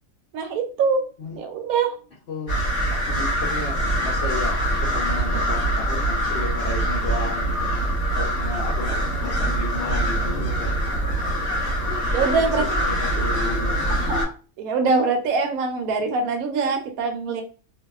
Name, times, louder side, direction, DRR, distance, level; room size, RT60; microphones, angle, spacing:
voice 1, 0.3-1.0 1.4-1.9 12.1-12.8 13.9-14.3 14.6-17.4, right 4 dB, 70° right, 4 dB, 0.9 m, -23 dB
sound 1, 2.5-14.2, right 1 dB, 45° left, 1.0 m, -24 dB
voice 2, 2.9-7.7 8.1-10.7 11.1-11.2 11.6-11.7 12.4-14.1, left 3 dB, 70° left, -4 dB, 0.6 m, -34 dB
2.6 x 2.2 x 2.3 m, 0.36 s
omnidirectional pair, 1.7 m